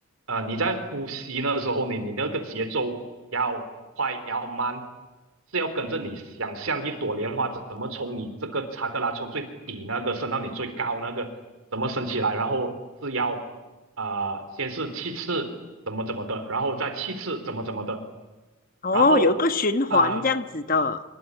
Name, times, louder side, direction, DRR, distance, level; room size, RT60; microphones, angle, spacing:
voice 1, 0.3-3.0 3.3-3.7 4.0-4.8 5.5-11.3 11.7-12.7 13.0-13.4 14.0-15.5 15.9-18.0 18.9-19.3 19.9-20.2, right 3 dB, 80° right, 9 dB, 3.9 m, -29 dB
voice 2, 18.8-21.0, left 3 dB, 40° left, 10 dB, 1.2 m, -22 dB
26.0 x 23.0 x 9.9 m, 1.1 s
head